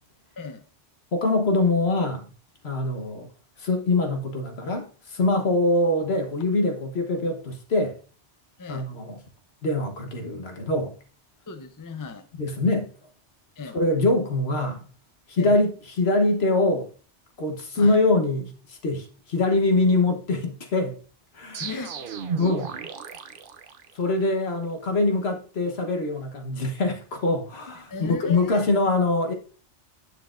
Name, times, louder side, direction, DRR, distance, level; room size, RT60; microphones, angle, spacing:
voice 1, 1.1-2.2 2.6-3.3 3.6-8.0 8.7-9.1 9.6-10.9 12.4-12.9 13.7-14.8 15.3-15.7 16.0-16.9 17.4-21.0 21.3-21.7 22.4-22.8 23.9-29.3, left 2 dB, 60° left, 1.4 m, -24 dB
voice 2, 11.5-12.3 13.6-13.8 15.4-15.6 17.7-18.0 21.6-22.1 27.9-28.7, left 4 dB, 25° left, 0.5 m, -36 dB
sound 1, 21.5-24.3, right 6 dB, 55° right, 0.8 m, -34 dB
9.4 x 6.7 x 2.5 m
omnidirectional pair, 1.2 m